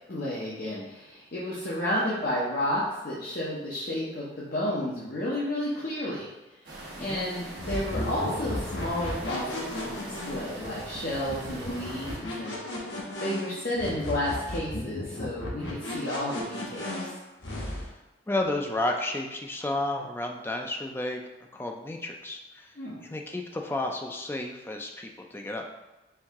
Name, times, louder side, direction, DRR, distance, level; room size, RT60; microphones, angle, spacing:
voice 1, 0.1-6.3 7.0-12.6 13.2-17.0 22.8-23.0, left 1 dB, 55° left, -8 dB, 0.8 m, -31 dB
sound 1, 6.6-12.2, right 1 dB, 65° right, 1.1 m, -42 dB
sound 2, 7.6-17.9, left 1 dB, 75° left, 1.1 m, -35 dB
voice 2, 18.3-21.2 21.5-22.7 23.0-25.7, left 2 dB, 15° left, 2 dB, 0.4 m, -32 dB
4.6 x 2.7 x 3.5 m, 1.1 s
head